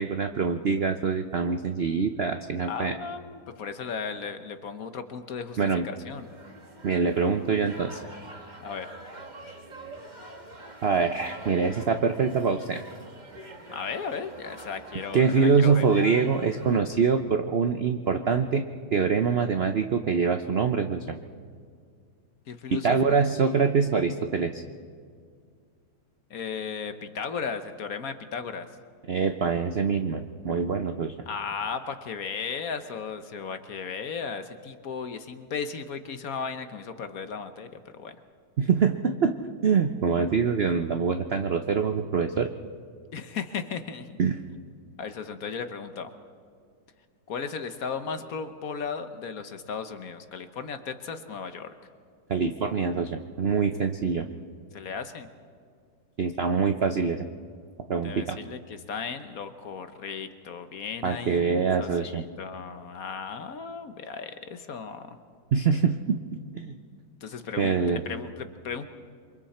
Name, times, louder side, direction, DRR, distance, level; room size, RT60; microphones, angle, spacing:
voice 1, 0.0-2.9 5.6-5.9 6.8-8.0 10.8-12.8 15.1-18.7 18.9-21.2 22.7-24.6 29.1-31.1 38.6-39.4 39.6-42.5 44.2-44.4 52.3-54.3 56.2-57.3 57.9-58.4 61.0-62.2 65.5-66.2 66.5-66.8 67.6-68.0, right 5 dB, 65° right, 7 dB, 0.6 m, -24 dB
voice 2, 2.6-6.3 8.6-8.9 13.7-15.9 22.5-23.2 23.4-23.7 26.3-28.7 31.3-38.1 43.1-44.1 45.0-46.1 47.3-51.7 54.7-55.3 58.0-65.2 67.2-68.9, left 6 dB, 55° left, 9 dB, 1.3 m, -36 dB
sound 1, 6.2-16.8, right 2 dB, 25° right, 1.7 m, -45 dB
28.0 x 24.0 x 4.3 m, 2.1 s
omnidirectional pair, 2.0 m